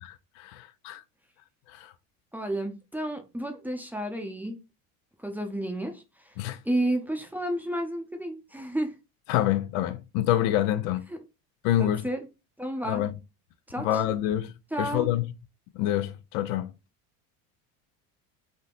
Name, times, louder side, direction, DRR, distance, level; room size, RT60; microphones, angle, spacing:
voice 1, 0.0-1.0 1.7-1.9 6.4-6.6 9.3-11.1 11.6-12.1 12.8-13.1 13.8-15.3 15.7-16.7, left 12 dB, 65° left, 0.5 m, -27 dB
voice 2, 2.3-4.6 5.2-6.4 6.6-9.0 11.1-11.2 11.8-12.2 12.6-13.0 13.7-14.0 14.7-15.1, right 1 dB, 5° right, 0.6 m, -31 dB
3.6 x 2.7 x 2.4 m
supercardioid pair, 100°, 41 cm